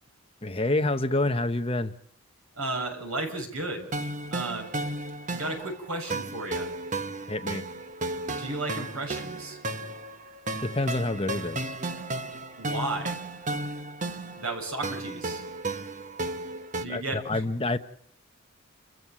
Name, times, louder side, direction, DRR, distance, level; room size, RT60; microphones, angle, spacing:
voice 1, 0.4-1.9 7.3-7.6 10.6-11.7 16.8-17.8, left 2 dB, 25° left, 1.0 m, -27 dB
voice 2, 2.5-3.9 4.3-4.7 5.3-6.7 8.2-9.6 12.6-13.2 14.4-15.4 16.7-17.4, right 2 dB, 70° right, 6.8 m, -33 dB
sound 1, 3.9-16.9, right 2 dB, 35° right, 1.1 m, -34 dB
29.5 x 15.5 x 7.6 m
head